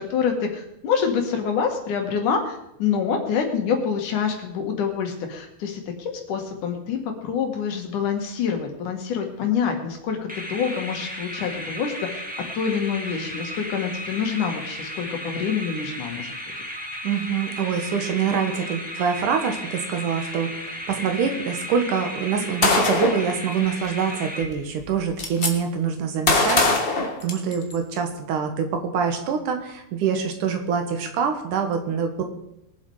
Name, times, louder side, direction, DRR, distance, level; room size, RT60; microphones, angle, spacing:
voice 1, 0.0-12.2 12.6-16.3, left 6 dB, 80° left, 3 dB, 3.4 m, -26 dB
sound 1, 10.3-24.9, equal, 5° right, 1.3 m, -35 dB
voice 2, 17.0-32.2, right 6 dB, 90° right, 5 dB, 3.0 m, -25 dB
Gunshot gunfire, 22.6-23.3 24.4-24.5 24.8-25.5 26.3-27.8, left 3 dB, 35° left, 0.9 m, -21 dB
21.5 x 7.6 x 4.8 m, 0.81 s
omnidirectional pair, 3.5 m